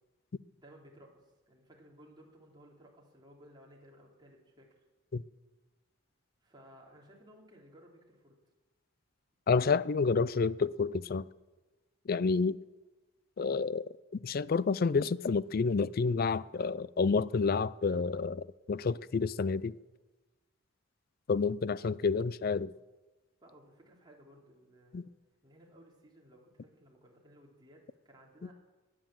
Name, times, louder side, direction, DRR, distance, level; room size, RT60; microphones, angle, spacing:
voice 1, 0.6-4.7 6.4-8.4 23.4-25.0 25.4-28.5, equal, 20° right, 3.2 m, -58 dB
voice 2, 9.5-11.3 12.1-12.6 13.4-13.8 14.2-19.7 21.3-22.7 24.9-25.0, left 4 dB, 50° left, 0.4 m, -29 dB
19.5 x 9.2 x 7.5 m
head